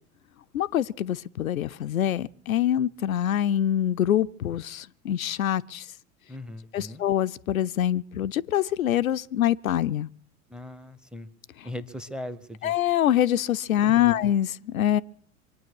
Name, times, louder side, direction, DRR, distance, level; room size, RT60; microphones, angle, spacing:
voice 1, 0.5-5.9 6.7-10.1 12.6-15.0, left 11 dB, 75° left, 0.5 m, -25 dB
voice 2, 6.3-7.0 10.5-11.3 11.6-12.7 13.8-14.2, left 1 dB, ahead, 0.7 m, -39 dB
24.0 x 9.1 x 6.3 m
figure-of-eight pair, 80°, 41 cm